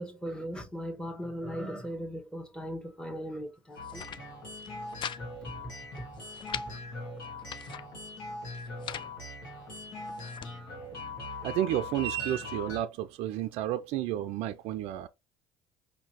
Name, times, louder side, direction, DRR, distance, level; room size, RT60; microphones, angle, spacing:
voice 1, 0.0-4.0 6.5-6.8, equal, 5° left, 1.1 m, -38 dB
sound 1, 3.7-4.2 4.6-5.2 5.5-5.6 6.0-6.7 7.2-7.9 8.5-9.1 9.8-10.5, left 9 dB, 45° left, 0.4 m, -41 dB
sound 2, 3.8-12.8, left 2 dB, 85° left, 1.7 m, -41 dB
voice 2, 11.4-15.1, right 13 dB, 65° right, 0.4 m, -31 dB
5.2 x 2.7 x 2.9 m
hypercardioid pair, 65°, 11 cm